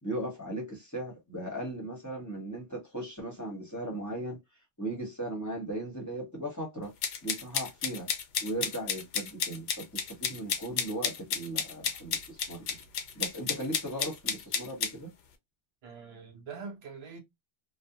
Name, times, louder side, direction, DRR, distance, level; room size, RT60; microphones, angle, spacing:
voice 1, 0.0-4.4 4.8-6.9 7.2-8.1 8.4-12.8 13.1-15.1, right 1 dB, 20° left, 0.8 m, -37 dB
sound 1, 7.0-14.9, left 7 dB, 90° left, 0.8 m, -32 dB
voice 2, 15.8-17.2, right 5 dB, 75° right, 1.0 m, -43 dB
2.5 x 2.1 x 2.6 m
omnidirectional pair, 1.1 m